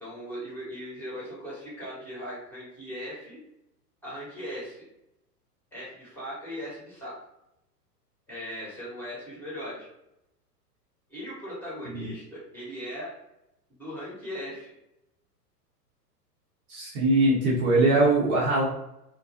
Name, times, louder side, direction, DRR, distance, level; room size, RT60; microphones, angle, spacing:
voice 1, 0.0-3.4 4.0-4.9 5.7-7.1 8.3-9.9 11.1-13.1 13.7-14.7, equal, 5° left, -8 dB, 1.0 m, -38 dB
voice 2, 16.7-18.6, right 2 dB, 35° right, -6 dB, 0.9 m, -22 dB
2.5 x 2.2 x 2.6 m, 0.84 s
figure-of-eight pair, 105°, 49 cm